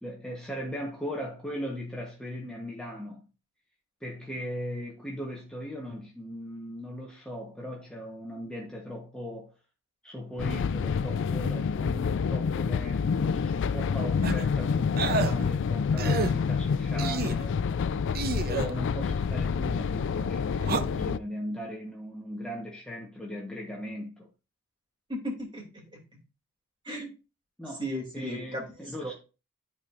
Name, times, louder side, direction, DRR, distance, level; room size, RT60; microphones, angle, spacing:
voice 1, 0.0-3.3 4.0-9.5 10.0-17.6 18.4-24.3 27.6-27.8 28.1-29.1, equal, 5° left, 1.1 m, -38 dB
sound 1, 10.4-21.2, left 6 dB, 60° left, 0.4 m, -28 dB
Grunts - Male, 14.2-14.4 15.0-15.3 16.0-16.3 17.0-17.4 18.1-18.7 20.6-20.8, right 4 dB, 45° right, 0.6 m, -29 dB
voice 2, 25.1-26.0 26.8-27.2 27.7-29.1, equal, 20° right, 2.7 m, -36 dB
12.5 x 4.4 x 2.5 m
head